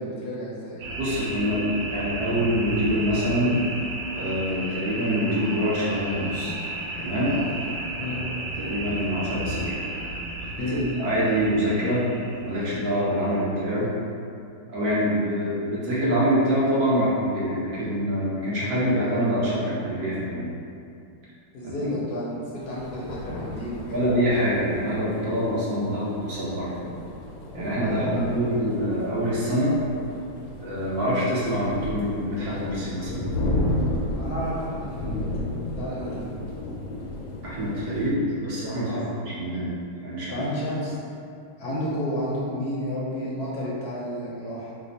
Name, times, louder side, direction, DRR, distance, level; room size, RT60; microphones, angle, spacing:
voice 1, 0.0-0.9 7.2-7.5 8.0-8.2 10.6-10.9 21.5-24.0 27.8-28.3 34.1-35.2 35.8-36.3 38.8-39.1 40.3-40.9 41.6-44.7, equal, 70° left, -6 dB, 1.0 m, -31 dB
sound 1, 0.8-13.4, right 2 dB, 85° right, 1.3 m, -34 dB
voice 2, 1.0-3.6 4.1-6.5 7.0-7.3 8.1-8.2 8.6-9.8 10.7-12.1 12.4-13.9 14.7-20.5 21.6-21.9 23.9-26.7 27.5-29.7 30.6-33.4 37.4-39.7 40.0-40.4, equal, 65° right, -8 dB, 1.2 m, -25 dB
sound 2, 22.6-38.1, left 1 dB, 90° left, 1.3 m, -33 dB
3.3 x 2.0 x 3.9 m, 2.5 s
omnidirectional pair, 2.0 m